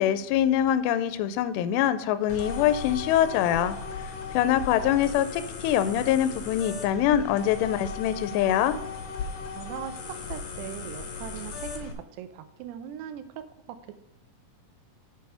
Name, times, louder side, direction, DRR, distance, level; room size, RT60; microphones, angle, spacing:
voice 1, 0.0-3.8 4.3-8.8, left 11 dB, 85° left, 12 dB, 2.7 m, -24 dB
Broken Hard Drive, 2.3-11.9, left 5 dB, 65° left, 2.4 m, -37 dB
voice 2, 9.5-13.9, right 10 dB, 80° right, 10 dB, 2.7 m, -40 dB
7.5 x 5.4 x 5.5 m, 0.88 s
omnidirectional pair, 4.9 m